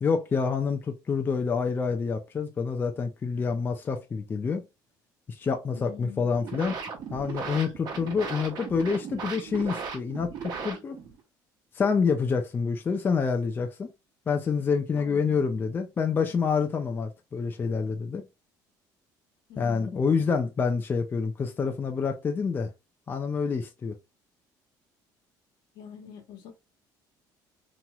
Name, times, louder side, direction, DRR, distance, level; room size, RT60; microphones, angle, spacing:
voice 1, 0.0-4.6 5.3-6.8 7.1-11.0 11.7-13.9 14.3-18.3 19.6-22.7 23.1-23.9, left 5 dB, 25° left, 0.4 m, -27 dB
voice 2, 5.7-6.7 15.0-15.5 19.5-20.2 25.7-26.5, left 8 dB, 75° left, 1.1 m, -45 dB
sound 1, 6.2-11.2, right 5 dB, 55° right, 1.0 m, -37 dB
2.9 x 2.9 x 2.3 m
cardioid pair, 120°, 8 cm